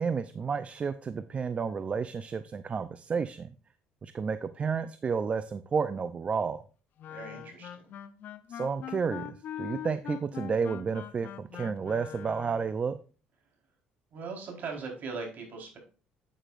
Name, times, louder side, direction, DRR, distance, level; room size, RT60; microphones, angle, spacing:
voice 1, 0.0-3.5 4.0-6.6 8.5-13.0, right 5 dB, 35° right, 12 dB, 0.6 m, -31 dB
Wind instrument woodwind instrument, 7.0-12.7, left 11 dB, 60° left, 0.8 m, -42 dB
voice 2, 7.1-7.9 14.1-15.8, right 4 dB, 55° right, 1 dB, 4.3 m, -39 dB
9.0 x 8.8 x 2.6 m, 0.36 s
cardioid pair, 95°, 4 cm